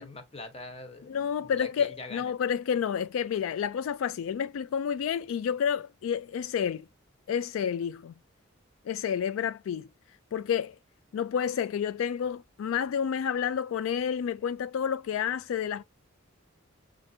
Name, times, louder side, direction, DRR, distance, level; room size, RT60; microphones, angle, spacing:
voice 1, 0.0-2.3, left 3 dB, 30° left, 1.0 m, -43 dB
voice 2, 1.1-6.9 7.3-8.1 8.9-9.9 10.3-10.8 11.1-15.8, left 8 dB, 80° left, 0.3 m, -30 dB
6.4 x 2.5 x 2.6 m
head